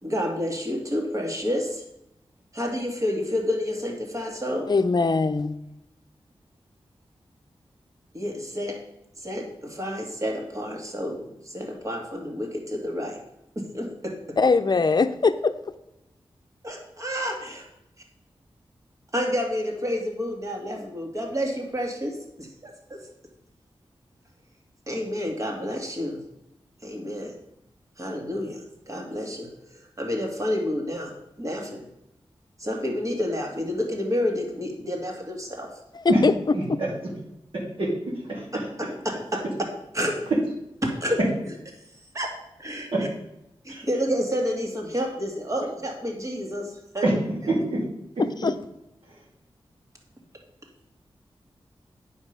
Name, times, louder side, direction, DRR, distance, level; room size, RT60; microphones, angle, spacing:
voice 1, 0.0-1.8 2.5-4.7 8.1-8.8 9.2-13.2 13.6-14.4 16.6-17.7 19.1-23.0 24.9-26.2 26.8-27.3 28.0-31.1 31.4-31.8 32.6-35.7 38.5-39.4 39.9-40.1 40.8-41.2 42.1-42.3 42.6-43.1 43.6-47.1, equal, 35° right, 2 dB, 2.3 m, -29 dB
voice 2, 4.7-5.6 14.4-15.5 36.0-36.3 48.4-48.5, left 4 dB, 45° left, 11 dB, 0.7 m, -21 dB
voice 3, 36.5-36.9 37.5-37.9 38.2-38.4 42.9-43.0 43.7-43.9 47.0-47.1 47.5-47.8, right 2 dB, 65° right, -5 dB, 2.7 m, -25 dB
9.7 x 5.4 x 6.7 m, 0.85 s
wide cardioid pair, 90°, 10 cm